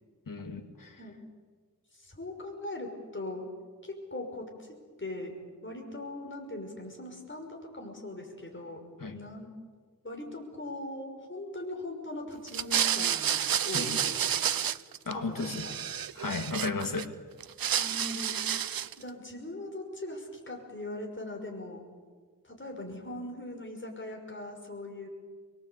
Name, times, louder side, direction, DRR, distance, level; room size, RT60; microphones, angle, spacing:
voice 1, 0.3-0.9 9.0-9.2 13.7-14.0 15.1-15.7 16.1-17.1, left 4 dB, 65° left, 4 dB, 2.7 m, -34 dB
voice 2, 1.9-3.5 3.8-5.3 5.6-9.5 10.0-14.5 15.1-15.7 17.7-18.4 19.0-21.8 22.4-25.1, left 1 dB, 35° left, 2 dB, 6.0 m, -40 dB
sound 1, 12.5-15.1 15.4-17.0 17.4-19.0, right 9 dB, 80° right, 0.7 m, -30 dB
24.5 x 22.5 x 8.5 m, 1.5 s
wide cardioid pair, 85°, 35 cm